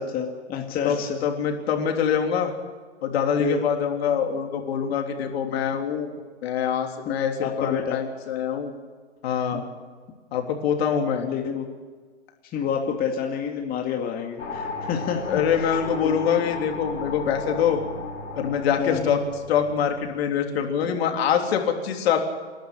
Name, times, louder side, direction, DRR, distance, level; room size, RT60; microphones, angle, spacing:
voice 1, 0.0-1.2 3.4-3.6 4.9-5.0 7.1-8.0 9.5-9.6 11.2-11.6 12.5-16.2 18.8-19.1, left 7 dB, 25° left, 2 dB, 2.2 m, -29 dB
voice 2, 1.2-2.5 3.0-6.1 6.4-8.7 9.2-9.6 10.3-11.3 15.3-17.8 18.4-19.2 19.5-22.2, left 8 dB, 60° left, 4 dB, 3.4 m, -24 dB
sound 1, 14.4-20.8, left 4 dB, 85° left, 3.8 m, -35 dB
27.5 x 11.5 x 8.8 m, 1.5 s
hypercardioid pair, 130°, 35 cm